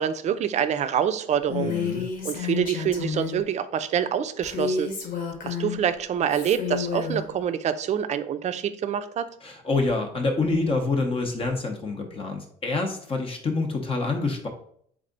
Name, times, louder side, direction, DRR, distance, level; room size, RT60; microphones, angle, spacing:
voice 1, 0.0-1.7 2.2-4.9 5.4-9.3, right 8 dB, 45° right, 11 dB, 0.4 m, -26 dB
Female speech woman speaking, 1.5-3.4 4.4-5.8 6.3-7.3, left 6 dB, 55° left, 1.1 m, -30 dB
voice 2, 1.6-2.0 9.4-14.5, left 3 dB, 35° left, 3 dB, 0.7 m, -27 dB
3.6 x 3.2 x 3.9 m, 0.64 s
cardioid pair, 110°, 17 cm